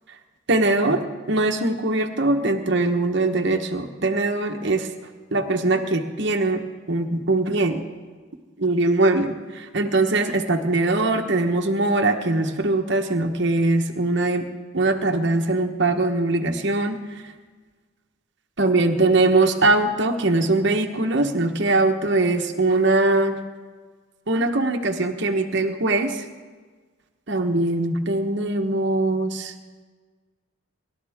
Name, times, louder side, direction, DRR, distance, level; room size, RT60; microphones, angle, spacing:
voice 1, 0.5-1.0 1.3-4.9 5.3-6.6 6.9-7.8 8.6-14.5 14.7-17.0 18.6-23.4 24.3-26.2 27.3-29.5, right 2 dB, 55° right, 4 dB, 1.2 m, -21 dB
27.0 x 12.5 x 3.6 m, 1.5 s
head